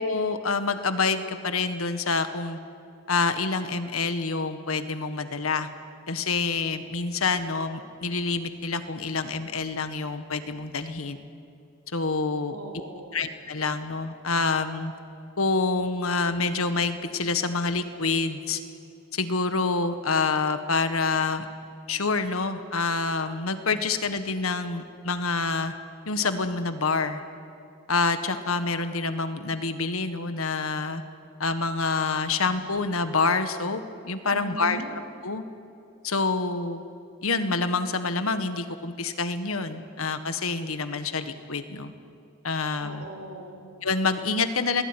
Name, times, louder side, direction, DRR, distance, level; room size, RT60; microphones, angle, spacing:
voice 1, 0.0-2.6 3.1-5.7 6.1-11.2 11.9-12.6 13.1-14.9 15.4-18.6 19.1-21.5 21.9-25.7 26.1-27.2 27.9-31.0 31.4-34.8 35.2-35.4 36.0-36.8 37.2-41.9 42.4-43.1 43.8-44.8, left 4 dB, 80° left, 9 dB, 1.7 m, -27 dB
voice 2, 12.5-13.2 34.3-34.9 42.8-43.7, right 1 dB, 85° right, 0 dB, 4.7 m, -39 dB
27.0 x 19.0 x 9.9 m, 2.6 s
head